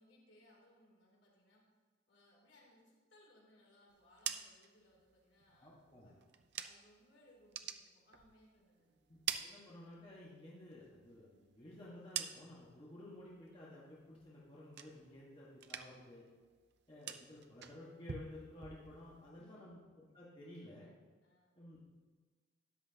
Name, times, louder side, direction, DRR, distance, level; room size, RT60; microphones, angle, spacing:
voice 1, 0.0-1.8 2.1-5.7 6.0-6.2 6.6-9.2 19.2-19.7 21.2-21.6, left 1 dB, 60° left, -3 dB, 3.1 m, -67 dB
sound 1, 3.9-7.0 7.4-8.7 9.0-10.3 10.6-12.8 13.2-13.6 14.0-15.3 15.5-16.2 16.4-19.3, right 9 dB, 55° right, 0.5 m, -47 dB
voice 2, 5.6-6.1 9.1-16.3 16.9-20.9 21.6-21.9, left 1 dB, 25° left, -7 dB, 1.6 m, -54 dB
13.5 x 10.0 x 2.9 m, 1.5 s
head